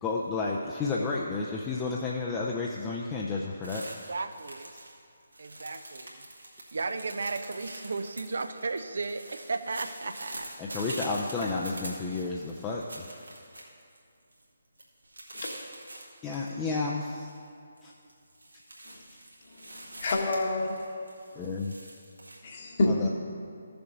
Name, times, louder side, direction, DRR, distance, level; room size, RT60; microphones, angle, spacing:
voice 1, 0.0-3.8 10.6-13.2 16.2-17.3 17.8-17.9 21.3-21.7 22.9-23.1, left 3 dB, 15° left, -3 dB, 0.6 m, -31 dB
sound 1, 3.6-4.9 5.2-14.0 14.3-14.4 14.8-16.5 16.9-17.4 17.8-22.4, right 1 dB, 80° right, 1.9 m, -45 dB
voice 2, 3.9-4.7 5.4-6.2 6.7-10.6, right 3 dB, 60° right, 9 dB, 0.5 m, -35 dB
voice 3, 19.5-20.8 22.4-22.9, left 2 dB, 45° left, 0 dB, 1.4 m, -29 dB
14.5 x 6.9 x 3.9 m, 2.4 s
figure-of-eight pair, 145°, 0 cm